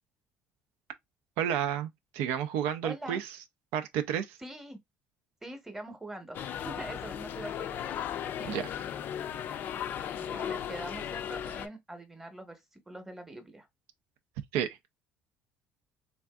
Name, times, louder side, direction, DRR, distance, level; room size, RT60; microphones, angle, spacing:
voice 1, 1.4-3.4 3.7-4.4 8.4-8.7 14.5-14.8, right 9 dB, 85° right, 0.4 m, -31 dB
voice 2, 2.8-3.2 4.4-4.8 5.4-7.9 10.1-13.7, right 1 dB, 10° right, 0.9 m, -43 dB
sound 1, 6.3-11.7, left 9 dB, 55° left, 0.4 m, -36 dB
3.4 x 2.5 x 2.3 m
cardioid pair, 115°, 4 cm